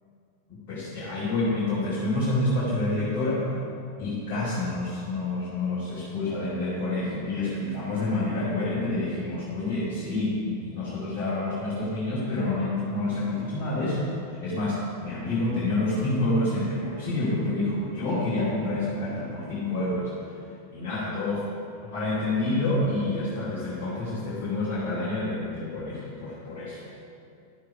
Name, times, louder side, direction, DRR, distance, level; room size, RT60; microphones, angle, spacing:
voice 1, 0.5-3.5 4.0-20.1 20.7-21.4 21.8-26.8, left 2 dB, 40° left, -9 dB, 2.2 m, -28 dB
10.5 x 6.7 x 4.6 m, 2.6 s
figure-of-eight pair, 90°, 0 cm